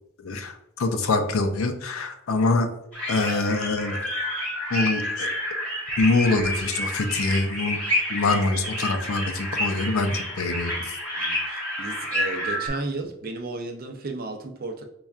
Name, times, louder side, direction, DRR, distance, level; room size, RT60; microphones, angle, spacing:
voice 1, 0.2-2.7 3.1-4.1 4.7-5.3 6.0-7.8 8.1-10.7, left 3 dB, 70° left, 0.4 m, -24 dB
sound 1, 2.9-12.7, left 1 dB, 5° left, 0.9 m, -29 dB
sound 2, 3.1-3.5 4.5-4.6 5.2-5.3 6.0-6.7, right 2 dB, 60° right, 0.8 m, -43 dB
voice 2, 11.2-14.9, right 3 dB, 45° right, 0.4 m, -34 dB
5.3 x 2.3 x 2.3 m
head